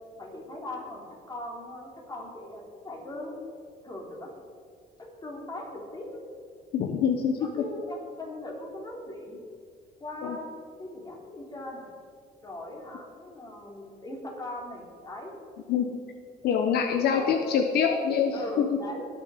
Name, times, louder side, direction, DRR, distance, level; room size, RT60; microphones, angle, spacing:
voice 1, 0.2-3.4 3.8-4.3 5.0-6.1 7.4-9.4 10.0-11.9 12.4-15.3 17.1-19.1, left 1 dB, 20° left, -1 dB, 3.7 m, -39 dB
voice 2, 6.7-7.4 10.2-10.4 15.7-15.9 16.4-18.7, left 7 dB, 70° left, 5 dB, 1.1 m, -25 dB
20.5 x 7.1 x 5.1 m, 2.3 s
cardioid pair, 110°, 17 cm